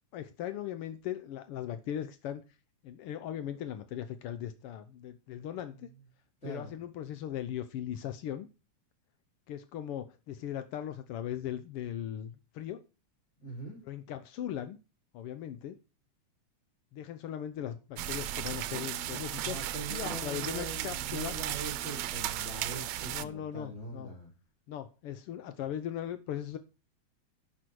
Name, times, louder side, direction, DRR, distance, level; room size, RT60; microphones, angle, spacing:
voice 1, 0.1-2.4 2.8-5.9 6.4-8.5 9.5-12.8 13.8-14.8 15.1-15.8 16.9-19.6 19.9-21.4 23.1-24.1 24.7-26.6, left 10 dB, 70° left, 10 dB, 1.4 m, -38 dB
voice 2, 6.4-6.8 13.4-13.8 19.4-24.3, right 1 dB, 20° left, -1 dB, 3.7 m, -42 dB
sound 1, 18.0-23.2, right 13 dB, 75° right, 1.8 m, -36 dB
11.0 x 8.2 x 4.6 m, 0.30 s
omnidirectional pair, 3.5 m